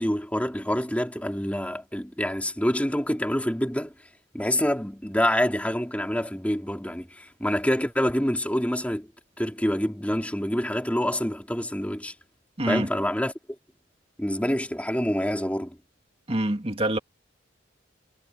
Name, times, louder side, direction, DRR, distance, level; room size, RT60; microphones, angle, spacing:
voice 1, 0.0-3.9 4.3-9.1 9.4-12.1 12.7-13.3 14.2-15.8, equal, 5° left, 3.5 m, -26 dB
voice 2, 12.6-12.9 16.3-17.0, right 1 dB, 30° right, 2.2 m, -25 dB
head